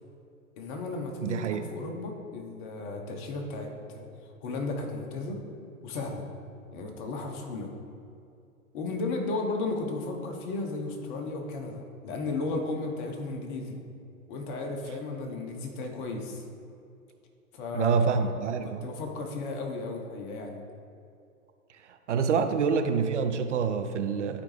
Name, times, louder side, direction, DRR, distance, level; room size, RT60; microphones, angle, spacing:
voice 1, 0.6-4.1 4.4-5.4 5.8-6.3 6.7-7.7 8.7-13.8 14.3-16.4 17.5-18.0 18.3-20.6, left 3 dB, 35° left, 2 dB, 1.2 m, -34 dB
voice 2, 1.2-1.7 17.7-18.8 22.1-24.4, right 6 dB, 55° right, 8 dB, 0.6 m, -26 dB
12.0 x 5.1 x 3.3 m, 2.5 s
figure-of-eight pair, 105°, 43 cm